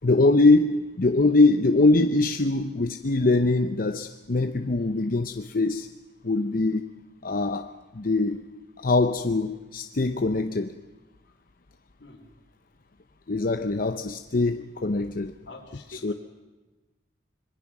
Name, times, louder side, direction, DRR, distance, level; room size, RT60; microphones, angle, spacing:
voice 1, 0.0-5.9 6.2-6.9 7.2-8.5 8.8-10.8 13.3-15.4 15.9-16.1, left 2 dB, 55° left, 0.8 m, -23 dB
voice 2, 15.5-16.1, left 2 dB, 80° left, 3.9 m, -45 dB
26.0 x 22.0 x 6.1 m
head